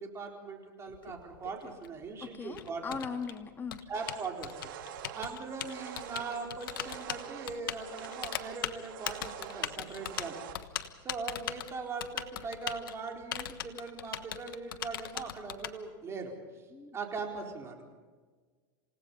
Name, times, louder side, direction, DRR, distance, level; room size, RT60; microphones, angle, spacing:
voice 1, 0.0-3.0 3.9-4.7 5.1-10.7 11.0-16.6 16.9-17.8, right 4 dB, 25° right, 2 dB, 4.2 m, -40 dB
Typing, 0.9-15.7, left 10 dB, 85° left, 1.3 m, -39 dB
voice 2, 2.2-3.8 16.7-17.0, left 5 dB, 20° left, 7 dB, 1.7 m, -39 dB
sound 1, 3.9-10.5, right 10 dB, 75° right, 2.1 m, -46 dB
28.0 x 17.5 x 5.6 m, 1.4 s
supercardioid pair, 125°, 11 cm